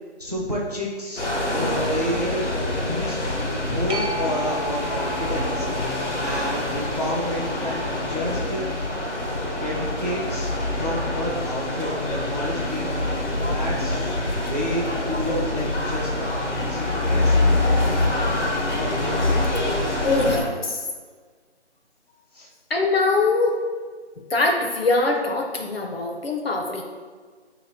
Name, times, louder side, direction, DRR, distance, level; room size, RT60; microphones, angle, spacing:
voice 1, 0.2-2.5 2.8-3.3 3.6-5.7 6.0-7.7 8.1-8.7 9.6-12.9 13.4-14.2 14.5-17.4 22.3-22.5, equal, 35° right, -3 dB, 0.4 m, -30 dB
sound 1, 1.2-20.4, left 2 dB, 90° left, 1.2 m, -25 dB
sound 2, 3.9-11.1 16.6-16.7, right 1 dB, 80° right, 0.9 m, -37 dB
voice 2, 20.0-20.8 22.7-23.6 24.3-26.8, left 3 dB, 60° left, 1 dB, 0.6 m, -22 dB
3.0 x 2.9 x 4.1 m, 1.5 s
figure-of-eight pair, 175°, 34 cm